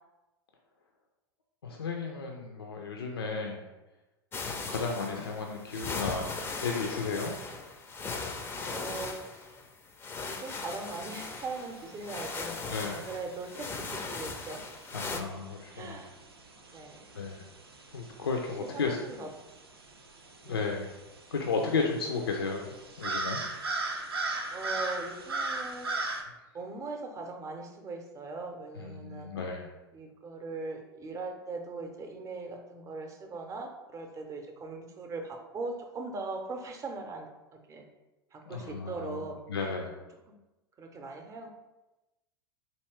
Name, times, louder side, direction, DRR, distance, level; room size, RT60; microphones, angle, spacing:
voice 1, 1.6-3.7 4.5-6.2 6.6-7.3 12.7-13.0 14.9-16.0 17.1-17.5 17.9-19.2 20.4-21.0 21.3-22.7 23.0-23.4 28.7-29.7 38.4-40.0, left 4 dB, 75° left, 1 dB, 0.4 m, -34 dB
sound 1, 4.3-15.2, left 4 dB, 20° left, 0.4 m, -38 dB
voice 2, 8.7-9.5 10.2-12.6 12.9-14.6 14.9-15.2 15.7-16.1 16.7-17.1 18.6-19.3 20.5-20.6 24.5-25.9 26.5-29.3 29.9-37.8 38.3-39.7 40.8-41.5, right 3 dB, 25° right, 3 dB, 0.6 m, -40 dB
sound 2, 10.5-26.2, right 3 dB, 80° right, 0.5 m, -40 dB
4.3 x 2.8 x 3.1 m, 1.0 s
figure-of-eight pair, 85°, 13 cm